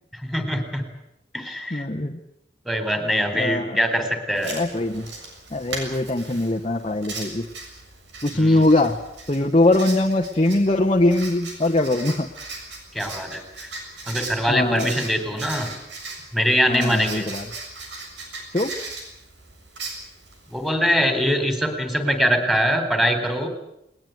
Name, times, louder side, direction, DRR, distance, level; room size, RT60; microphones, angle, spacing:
voice 1, 0.2-0.9 1.3-1.9 2.7-4.5 8.3-8.6 12.9-13.7 14.1-15.7 16.3-17.3 20.5-23.5, equal, ahead, 7 dB, 3.7 m, -23 dB
voice 2, 1.7-2.2 3.3-3.8 4.5-5.0 5.5-7.5 8.2-9.0 9.3-12.3 14.5-14.9 16.7-17.4 18.5-18.7, left 2 dB, 30° left, 1 dB, 1.2 m, -21 dB
Writing, 4.3-20.7, right 3 dB, 90° right, 7.0 m, -38 dB
20.0 x 20.0 x 9.3 m, 0.83 s
head